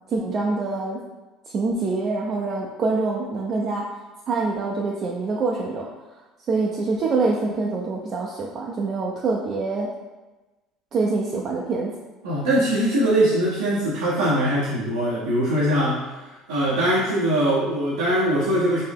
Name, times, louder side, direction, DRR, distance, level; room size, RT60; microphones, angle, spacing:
voice 1, 0.1-1.0 1.5-3.8 4.3-5.8 6.5-9.9 10.9-11.9, right 3 dB, 45° right, -2 dB, 0.4 m, -25 dB
voice 2, 12.2-16.0 16.5-18.8, right 1 dB, 90° right, -8 dB, 0.7 m, -21 dB
3.9 x 2.0 x 3.5 m, 1.1 s
hypercardioid pair, 75°, 0 cm